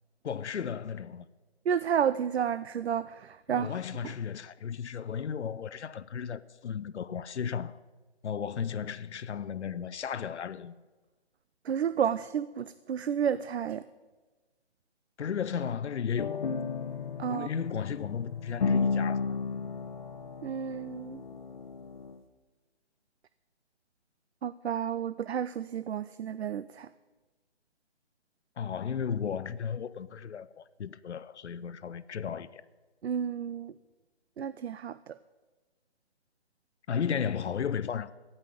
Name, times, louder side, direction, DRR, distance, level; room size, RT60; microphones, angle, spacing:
voice 1, 0.2-1.3 3.5-7.8 8.2-10.8 15.2-16.4 17.3-19.3 28.6-32.6 36.9-38.1, left 7 dB, 90° left, 0.7 m, -34 dB
voice 2, 1.7-3.7 11.7-13.8 17.2-17.5 20.4-21.2 24.4-26.9 33.0-33.7 34.4-35.2, right 8 dB, 70° right, 0.5 m, -31 dB
sound 1, 16.2-22.2, left 5 dB, 45° left, 0.8 m, -33 dB
15.5 x 5.6 x 9.1 m
hypercardioid pair, 170°, 33 cm